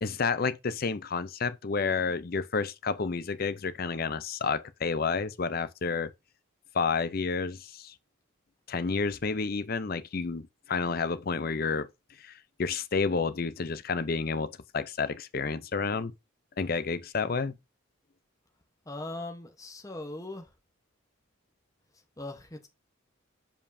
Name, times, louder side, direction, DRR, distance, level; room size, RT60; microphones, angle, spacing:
voice 1, 0.0-6.1 6.7-7.9 8.7-11.9 12.2-16.1 16.6-17.6, left 5 dB, 45° left, 0.5 m, -30 dB
voice 2, 18.9-20.5 22.2-22.7, left 2 dB, 15° left, 0.9 m, -39 dB
6.9 x 5.3 x 2.6 m
head